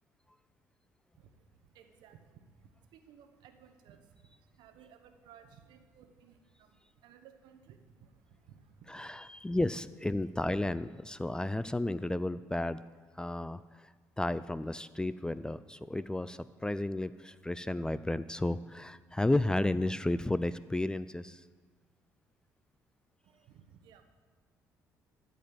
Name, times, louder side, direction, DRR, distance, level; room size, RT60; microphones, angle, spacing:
voice 1, 1.1-9.4 23.2-24.0, right 7 dB, 75° right, 8 dB, 1.0 m, -59 dB
voice 2, 8.9-12.8 13.2-13.6 14.2-21.4, left 1 dB, 10° left, 15 dB, 0.4 m, -32 dB
13.5 x 5.3 x 7.9 m, 1.5 s
supercardioid pair, 60°, 8 cm